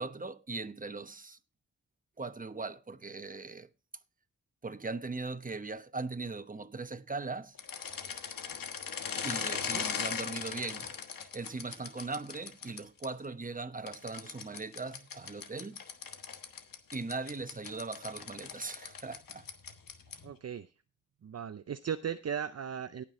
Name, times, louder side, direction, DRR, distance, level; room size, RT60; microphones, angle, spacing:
voice 1, 0.0-1.4 2.2-3.7 4.6-7.6 9.2-15.8 16.9-19.4, right 3 dB, 25° right, 1.0 m, -39 dB
sound 1, 7.6-13.1 13.9-20.3, left 7 dB, 85° left, 1.3 m, -39 dB
voice 2, 20.2-20.7 21.2-23.0, right 8 dB, 50° right, 0.6 m, -37 dB
18.0 x 6.1 x 3.7 m
cardioid pair, 60°, 33 cm